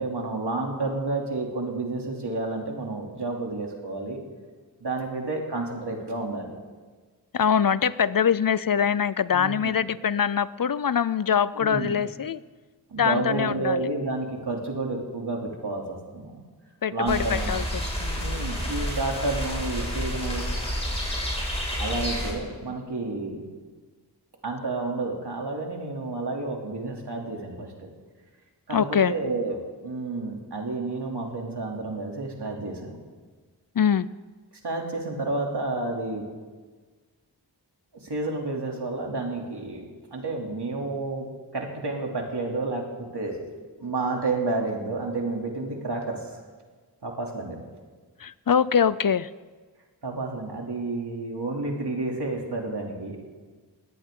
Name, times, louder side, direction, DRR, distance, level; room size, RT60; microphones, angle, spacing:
voice 1, 0.0-4.2 4.8-6.5 9.3-9.8 11.5-11.9 12.9-16.4 16.9-17.5 18.2-20.4 21.8-23.4 24.4-27.9 28.7-33.0 34.6-36.2 37.9-39.8 40.1-43.5 43.8-46.4 47.0-47.6 50.0-53.2, right 2 dB, 75° right, 0 dB, 3.0 m, -30 dB
voice 2, 7.3-12.4 13.0-13.9 16.8-18.3 28.7-29.1 33.8-34.1 48.2-49.3, left 7 dB, 55° left, 17 dB, 0.5 m, -23 dB
sound 1, 17.1-22.3, equal, 15° left, 5.9 m, -29 dB
20.5 x 17.0 x 3.8 m, 1.4 s
wide cardioid pair, 70°, 41 cm